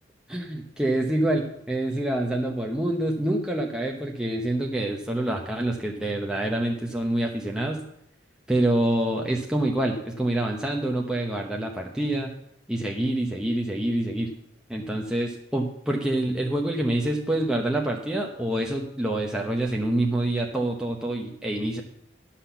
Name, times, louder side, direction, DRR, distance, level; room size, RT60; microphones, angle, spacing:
voice 1, 0.3-7.8 8.5-12.3 12.7-14.3 14.7-21.8, right 1 dB, 5° right, 0 dB, 0.8 m, -26 dB
12.0 x 5.8 x 7.0 m, 0.76 s
head